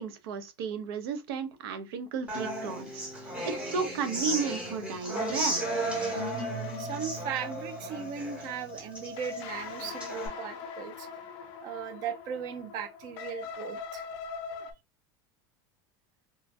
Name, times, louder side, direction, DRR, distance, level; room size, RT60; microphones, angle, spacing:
voice 1, 0.0-5.7, right 5 dB, 80° right, 0.7 m, -34 dB
Human voice / Acoustic guitar, 2.3-10.3, right 2 dB, 10° right, 0.9 m, -35 dB
sound 1, 5.2-14.7, left 5 dB, 40° left, 0.5 m, -41 dB
voice 2, 6.8-11.1 11.6-14.1, right 8 dB, 30° right, 0.4 m, -37 dB
3.0 x 2.3 x 2.5 m
supercardioid pair, 180°, 12 cm